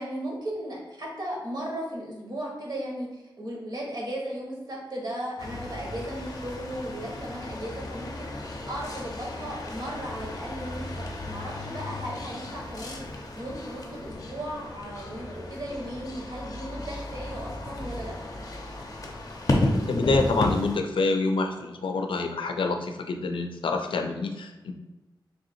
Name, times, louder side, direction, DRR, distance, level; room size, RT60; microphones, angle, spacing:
voice 1, 0.0-10.9 11.2-18.1, right 1 dB, 55° right, -2 dB, 1.1 m, -36 dB
sound 1, 5.4-20.8, left 2 dB, 45° left, 0.6 m, -33 dB
voice 2, 19.9-24.7, left 3 dB, 90° left, 5 dB, 0.4 m, -27 dB
3.3 x 2.7 x 4.2 m, 1.1 s
wide cardioid pair, 130°, 9 cm